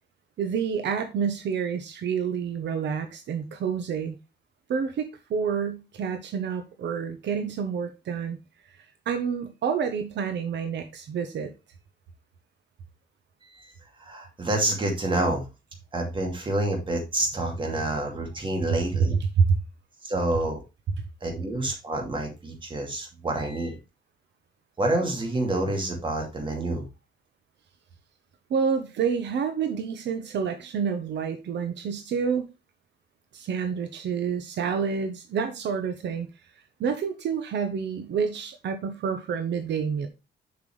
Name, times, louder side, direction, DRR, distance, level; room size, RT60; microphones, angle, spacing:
voice 1, 0.4-4.2 4.7-8.4 9.1-11.5 19.4-19.5 28.5-32.5 33.3-36.3 36.8-40.1, right 6 dB, 70° right, 1.0 m, -28 dB
voice 2, 14.0-15.4 15.9-19.2 20.0-20.6 21.2-23.8 24.8-26.9, right 2 dB, 25° right, 2.4 m, -28 dB
7.3 x 5.9 x 3.2 m
cardioid pair, 165°, 19 cm